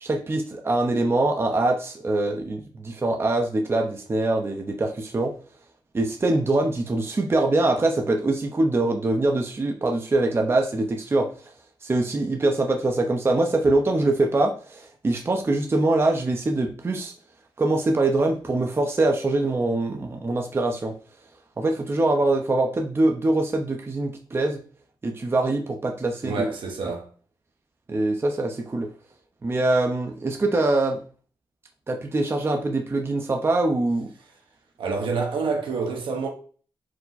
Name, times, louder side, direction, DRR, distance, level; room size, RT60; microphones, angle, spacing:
voice 1, 0.0-5.3 5.9-11.3 11.8-17.1 17.6-20.9 21.6-24.6 25.0-26.5 27.9-28.9 29.4-31.0 31.9-34.1, right 2 dB, 30° right, 0.6 m, -23 dB
voice 2, 26.2-27.1 34.8-36.3, right 4 dB, 75° right, 1.1 m, -27 dB
4.6 x 2.1 x 4.0 m
cardioid pair, 85°, 9 cm